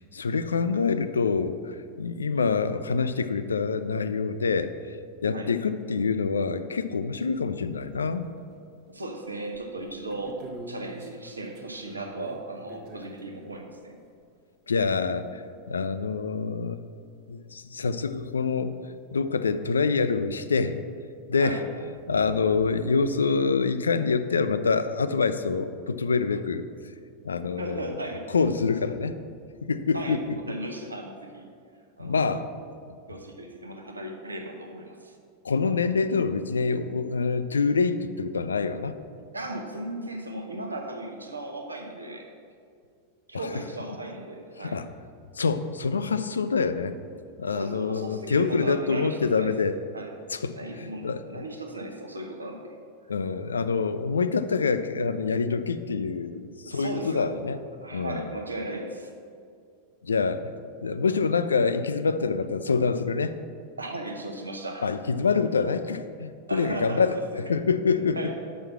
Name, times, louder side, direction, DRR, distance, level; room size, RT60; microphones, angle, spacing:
voice 1, 0.0-4.7 5.2-8.3 14.7-15.4 15.7-16.8 17.3-18.8 19.1-20.8 21.3-21.6 22.1-26.7 27.2-28.0 28.3-29.2 29.6-30.5 32.0-32.5 35.4-38.9 43.3-43.5 44.6-44.9 45.4-47.0 47.4-49.8 50.3-51.2 53.1-57.6 57.9-58.2 60.0-60.6 60.8-63.4 64.8-68.2, left 5 dB, 70° left, 11 dB, 0.3 m, -26 dB
sound 1, 7.3-7.4 7.8-8.9 9.3-13.6 16.2-16.3 16.5-16.6 17.6-17.7 18.3-18.4 22.0-22.1 22.3-22.7, right 2 dB, 45° right, 0.9 m, -47 dB
voice 2, 8.9-14.0 21.3-21.7 27.6-28.3 29.9-30.2 30.5-31.5 32.0-32.3 33.1-35.1 39.3-42.3 43.3-44.8 47.5-49.5 49.9-50.1 50.5-52.8 56.7-57.3 57.8-59.1 63.8-64.9 66.5-67.2 67.9-68.4, right 2 dB, 80° right, 4 dB, 0.7 m, -36 dB
6.2 x 5.5 x 6.1 m, 2.2 s
figure-of-eight pair, 90°, 0 cm